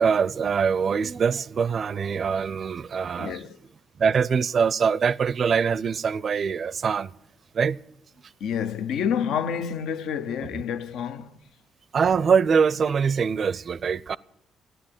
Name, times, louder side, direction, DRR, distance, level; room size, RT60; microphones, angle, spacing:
voice 1, 0.0-3.4 4.0-7.1 7.5-7.8 11.9-14.2, right 6 dB, 50° right, 0.4 m, -23 dB
voice 2, 3.2-3.6 8.4-11.3, left 8 dB, 80° left, 0.7 m, -28 dB
14.0 x 10.0 x 8.9 m
cardioid pair, 90°, 0 cm